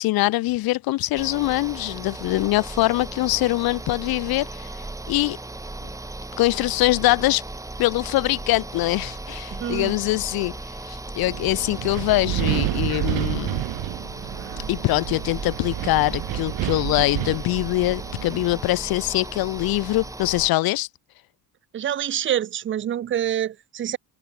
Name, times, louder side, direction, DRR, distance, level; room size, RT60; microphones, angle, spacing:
voice 1, 0.0-4.7 5.1-5.4 6.4-7.4 7.8-10.5 10.9-13.6 14.7-20.9, left 18 dB, 70° left, 1.6 m, -23 dB
sound 1, 1.1-20.5, right 2 dB, 10° right, 6.9 m, -36 dB
voice 2, 9.5-9.9 21.7-24.0, right 10 dB, 30° right, 1.1 m, -26 dB
Wind, 11.3-18.6, right 18 dB, 70° right, 2.0 m, -29 dB
cardioid pair, 175°, 38 cm